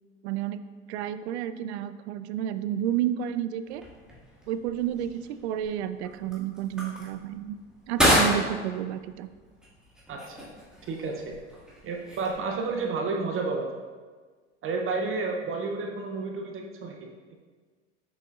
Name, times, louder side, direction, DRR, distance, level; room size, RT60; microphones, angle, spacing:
voice 1, 0.2-0.6 0.9-3.8 4.5-7.6 7.9-9.3, right 11 dB, 70° right, 12 dB, 0.5 m, -31 dB
sound 1, 3.7-12.8, equal, ahead, 1.9 m, -31 dB
voice 2, 10.1-10.5 10.9-11.4 11.8-13.7 14.6-17.1, right 4 dB, 35° right, 2 dB, 0.8 m, -31 dB
6.8 x 6.2 x 2.5 m, 1.5 s
hypercardioid pair, 75°, 34 cm